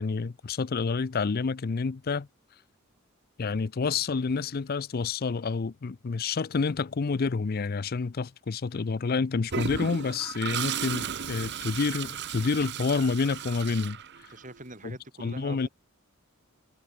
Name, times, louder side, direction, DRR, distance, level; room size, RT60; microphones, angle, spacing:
voice 1, 0.0-2.3 3.4-14.0 14.8-15.7, left 4 dB, 45° left, 0.5 m, -29 dB
Toilet flush, 9.5-14.6, right 7 dB, 55° right, 1.1 m, -35 dB
voice 2, 14.3-15.7, right 2 dB, 40° right, 6.3 m, -44 dB
head